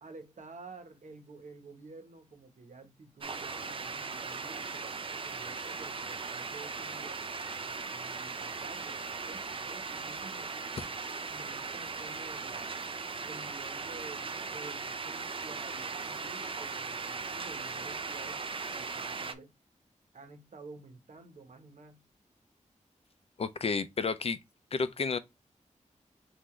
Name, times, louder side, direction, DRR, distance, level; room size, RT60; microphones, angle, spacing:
voice 1, 0.0-7.2 7.7-10.9 11.3-12.8 13.2-19.5 20.1-22.1, right 3 dB, 70° right, 1.0 m, -51 dB
sound 1, 3.2-19.3, right 4 dB, 45° right, 0.5 m, -38 dB
voice 2, 23.4-24.4 24.7-25.2, left 4 dB, 50° left, 0.5 m, -31 dB
5.7 x 2.6 x 3.1 m
wide cardioid pair, 100°, 13 cm